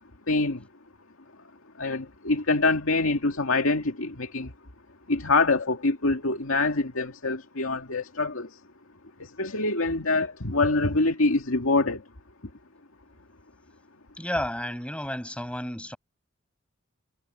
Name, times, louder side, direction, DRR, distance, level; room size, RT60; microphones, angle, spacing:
voice 1, 0.3-0.7 1.8-4.5 5.1-8.6 9.2-12.0, left 3 dB, 90° left, 2.1 m, -25 dB
voice 2, 14.2-16.0, left 1 dB, 5° left, 6.3 m, -32 dB
head